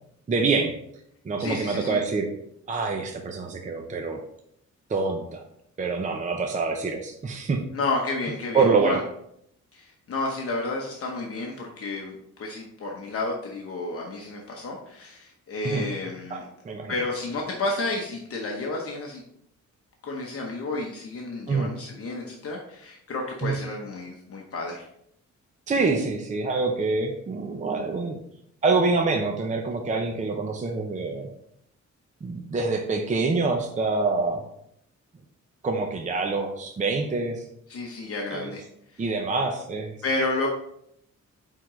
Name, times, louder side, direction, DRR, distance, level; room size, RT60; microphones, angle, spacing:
voice 1, 0.3-0.8 1.2-2.3 2.7-4.2 4.9-5.4 5.8-7.6 8.5-9.0 15.6-15.8 16.3-16.9 21.5-21.7 23.4-23.6 25.7-28.2 28.6-31.3 32.2-34.4 35.6-37.4 38.3-38.5 39.0-40.0, right 4 dB, 25° right, 3 dB, 0.6 m, -26 dB
voice 2, 1.4-2.0 7.7-9.0 9.7-16.4 16.9-19.2 20.0-24.9 37.7-38.6 38.9-39.1 40.0-40.5, left 2 dB, 50° left, -1 dB, 0.9 m, -31 dB
9.2 x 3.8 x 3.1 m, 0.73 s
wide cardioid pair, 180°, 30 cm